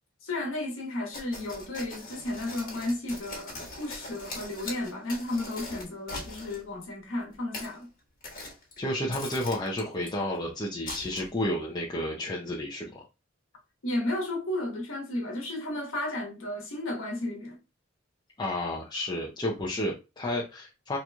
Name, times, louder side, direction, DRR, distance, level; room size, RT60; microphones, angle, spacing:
voice 1, 0.2-7.9 13.8-17.6, left 1 dB, 75° left, 1.2 m, -33 dB
sound 1, 1.1-6.6 7.3-7.7 8.2-8.8 9.1-10.1 10.9-11.4, left 2 dB, 45° left, 1.4 m, -41 dB
voice 2, 8.8-13.0 18.4-21.0, left 1 dB, 20° left, 0.6 m, -31 dB
3.8 x 3.0 x 2.2 m
head